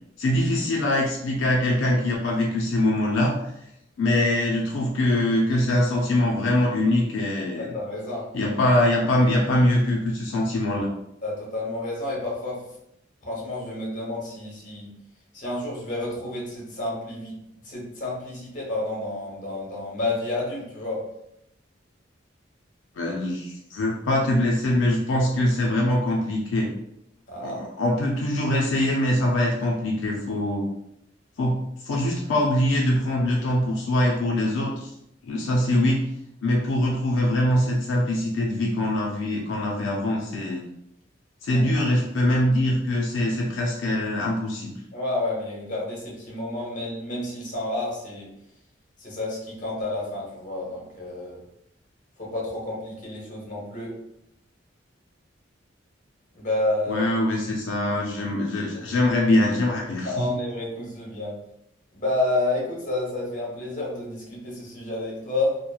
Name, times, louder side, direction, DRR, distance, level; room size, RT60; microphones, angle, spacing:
voice 1, 0.2-3.5 4.0-7.7 8.3-10.9 23.0-26.7 27.4-30.7 31.4-34.9 35.2-36.1 36.4-40.6 41.4-44.8 56.9-60.4, left 1 dB, 85° left, -2 dB, 0.4 m, -23 dB
voice 2, 7.6-8.2 11.2-12.6 13.2-14.9 15.3-17.4 17.6-21.0 27.3-27.6 41.5-41.8 44.9-48.3 49.0-51.4 52.2-53.9 56.3-57.1 60.0-61.4 61.9-65.6, left 2 dB, 40° left, -4 dB, 1.0 m, -30 dB
2.9 x 2.1 x 2.3 m, 0.80 s
head